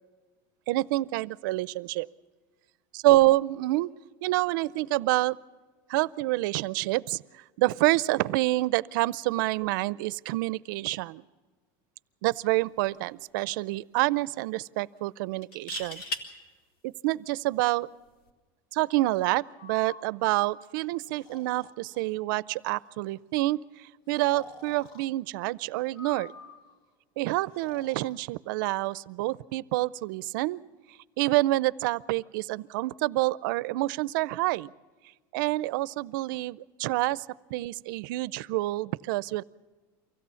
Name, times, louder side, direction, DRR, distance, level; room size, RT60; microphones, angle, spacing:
voice 1, 0.7-2.1 2.9-3.9 4.2-5.4 5.9-11.2 12.2-16.0 16.8-17.9 18.7-26.3 27.2-30.6 31.2-34.7 35.3-37.3 37.5-39.4, right 18 dB, 70° right, 19 dB, 0.5 m, -27 dB
sound 1, 12.6-12.8 13.1-13.2 15.4-16.2 18.1-18.3, left 2 dB, 55° left, 2.2 m, -36 dB
Breathing, 19.5-20.1 21.1-22.0 22.5-22.9 24.1-25.1 25.9-26.8 27.5-28.1, left 3 dB, 35° left, 1.3 m, -49 dB
24.5 x 16.5 x 7.0 m, 1.3 s
cardioid pair, 165°, 11 cm